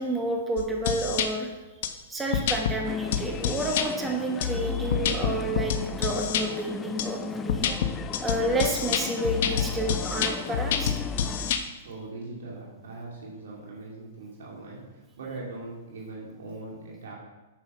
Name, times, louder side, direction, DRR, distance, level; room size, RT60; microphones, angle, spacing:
voice 1, 0.0-1.5 2.1-7.7 8.2-11.0, right 1 dB, 10° right, 1 dB, 1.2 m, -30 dB
sound 1, 0.6-1.3 1.8-1.9 2.3-2.8 3.1-3.9 4.4-6.4 7.0-7.1 7.5-11.6, left 8 dB, 60° left, 1.0 m, -27 dB
sound 2, 2.8-11.5, left 7 dB, 20° left, 0.3 m, -38 dB
voice 2, 11.8-17.1, right 2 dB, 80° right, -3 dB, 2.6 m, -40 dB
8.6 x 6.8 x 5.6 m, 1.1 s
hypercardioid pair, 140°, 0 cm